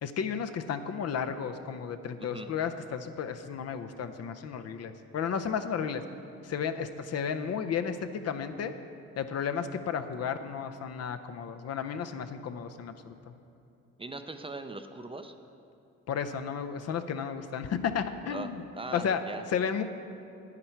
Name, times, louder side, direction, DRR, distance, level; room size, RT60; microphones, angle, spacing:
voice 1, 0.0-6.0 6.4-8.0 8.2-8.7 9.2-13.1 16.1-18.6 18.9-19.2 19.5-19.8, left 7 dB, 55° left, 8 dB, 0.6 m, -33 dB
voice 2, 14.0-15.3 18.3-18.5 18.7-19.4, right 2 dB, 20° right, 7 dB, 0.5 m, -40 dB
10.0 x 9.7 x 4.5 m, 2.7 s
cardioid pair, 90°, 30 cm